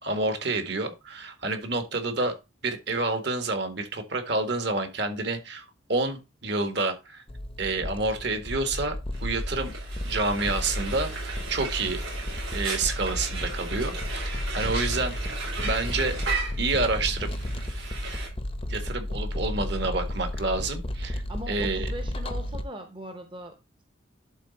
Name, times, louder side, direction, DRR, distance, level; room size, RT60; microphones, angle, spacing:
voice 1, 0.0-2.3 2.6-7.2 7.6-8.9 9.2-9.7 10.0-11.1 11.5-12.0 12.5-14.0 14.2-15.3 15.6-16.2 16.6-17.3 18.7-21.9, right 3 dB, 55° right, 6 dB, 1.7 m, -28 dB
sound 1, 7.3-22.6, left 1 dB, 25° left, 0.6 m, -33 dB
Frying (food), 9.1-18.3, right 4 dB, 80° right, 4.1 m, -36 dB
voice 2, 21.3-23.8, equal, 25° right, 5 dB, 0.8 m, -40 dB
11.5 x 4.1 x 4.1 m, 0.25 s
head